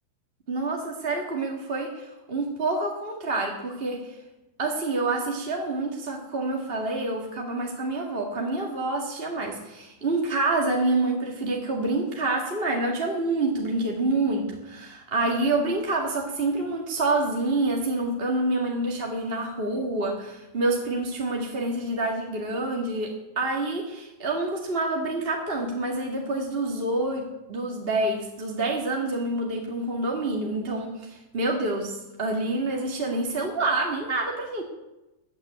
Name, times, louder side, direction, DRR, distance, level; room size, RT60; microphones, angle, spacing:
voice 1, 0.5-4.2 4.6-34.6, right 2 dB, 25° right, 0 dB, 1.7 m, -27 dB
14.5 x 9.9 x 8.4 m, 0.98 s
omnidirectional pair, 3.3 m